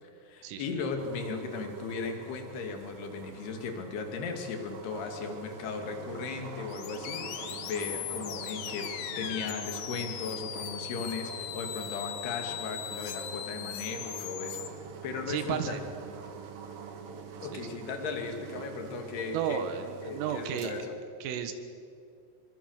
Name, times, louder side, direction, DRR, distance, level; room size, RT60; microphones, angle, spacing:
voice 1, 0.0-8.9 9.2-14.7 15.0-15.8 17.4-19.6 20.0-20.9, left 5 dB, 60° left, 4 dB, 4.1 m, -37 dB
sound 1, 1.0-20.8, right 6 dB, 60° right, 3.0 m, -45 dB
sound 2, 6.7-14.7, left 11 dB, 75° left, 3.5 m, -39 dB
voice 2, 15.3-15.8 17.5-17.6 19.3-20.7 21.2-21.5, right 9 dB, 90° right, 8 dB, 4.2 m, -33 dB
26.5 x 23.0 x 6.6 m, 2.4 s
omnidirectional pair, 5.7 m